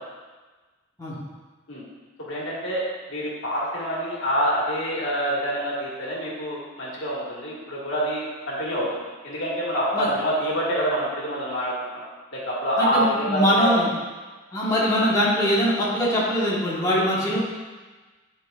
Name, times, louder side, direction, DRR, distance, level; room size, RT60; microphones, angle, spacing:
voice 1, 2.3-2.8 3.1-12.0 12.3-13.6, equal, 85° left, -5 dB, 1.7 m, -26 dB
voice 2, 12.8-13.9 14.5-17.4, equal, 20° left, -8 dB, 1.4 m, -22 dB
10.0 x 4.0 x 2.5 m, 1.3 s
head